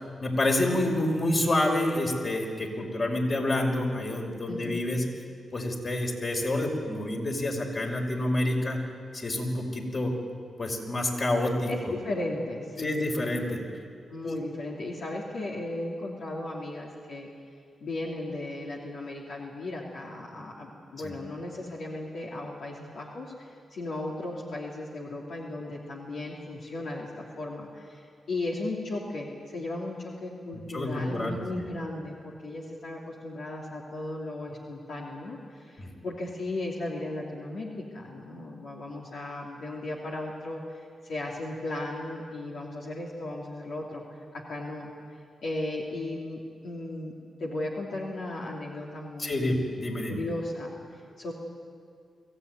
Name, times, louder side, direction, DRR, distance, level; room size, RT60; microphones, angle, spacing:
voice 1, 0.2-5.0 5.5-8.8 9.1-10.1 10.6-11.7 12.8-13.6 14.2-14.4 21.0-21.2 30.5-31.6 35.8-35.9 49.2-50.2, left 1 dB, 45° left, 1 dB, 5.4 m, -28 dB
voice 2, 4.5-4.8 11.7-13.3 13.7-13.8 14.1-17.3 17.8-47.1 47.4-49.6 50.1-51.3, left 2 dB, 75° left, -3 dB, 2.8 m, -36 dB
23.5 x 16.0 x 9.6 m, 2.3 s
supercardioid pair, 45°, 0 cm